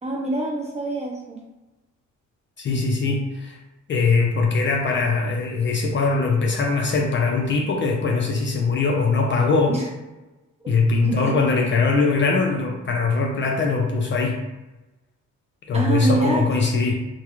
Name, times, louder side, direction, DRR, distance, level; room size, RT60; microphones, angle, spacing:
voice 1, 0.0-1.4 9.7-9.8 10.6-10.7 11.0-11.4 15.7-16.5, right 2 dB, 20° right, -3 dB, 0.7 m, -25 dB
voice 2, 2.6-3.6 3.9-9.8 10.7-14.4 15.7-16.9, left 4 dB, 40° left, 1 dB, 0.4 m, -21 dB
2.3 x 2.1 x 3.0 m, 1.1 s
cardioid pair, 90°, 30 cm